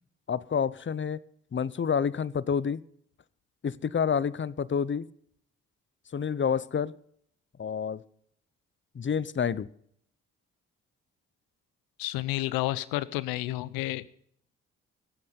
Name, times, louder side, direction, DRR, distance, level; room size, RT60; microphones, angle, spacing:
voice 1, 0.3-1.2 1.5-2.8 3.6-5.1 6.1-6.9 7.6-8.0 8.9-9.7, left 7 dB, 35° left, 20 dB, 0.8 m, -28 dB
voice 2, 12.0-14.0, left 17 dB, 85° left, 19 dB, 0.7 m, -30 dB
20.0 x 8.6 x 5.4 m, 0.66 s
hypercardioid pair, 45°, 35 cm